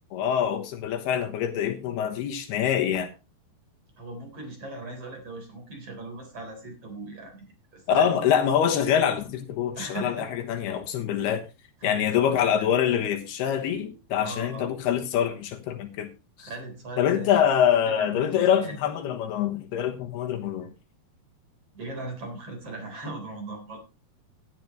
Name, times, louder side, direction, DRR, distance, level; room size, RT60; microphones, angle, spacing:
voice 1, 0.1-3.1 7.9-11.4 11.8-16.1 16.4-16.5 17.0-20.7, left 9 dB, 75° left, 3.2 m, -25 dB
voice 2, 4.0-8.3 9.8-10.3 11.8-12.7 14.2-14.7 16.4-17.4 17.8-18.8 21.7-23.8, right 2 dB, 35° right, 4.7 m, -39 dB
16.0 x 11.0 x 3.1 m
omnidirectional pair, 4.8 m